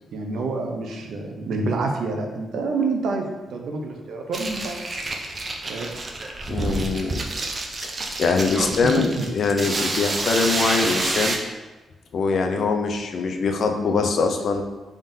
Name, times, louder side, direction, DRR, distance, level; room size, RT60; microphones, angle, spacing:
voice 1, 0.1-4.8 5.7-5.9 9.2-9.3, right 3 dB, 80° right, 2 dB, 0.6 m, -27 dB
sound 1, 4.3-11.4, right 2 dB, 30° right, 0.5 m, -28 dB
voice 2, 6.5-7.2 7.8-7.9 8.2-11.4 12.1-14.6, left 4 dB, 55° left, 5 dB, 0.4 m, -23 dB
5.3 x 3.6 x 2.7 m, 1.2 s
wide cardioid pair, 155°, 0 cm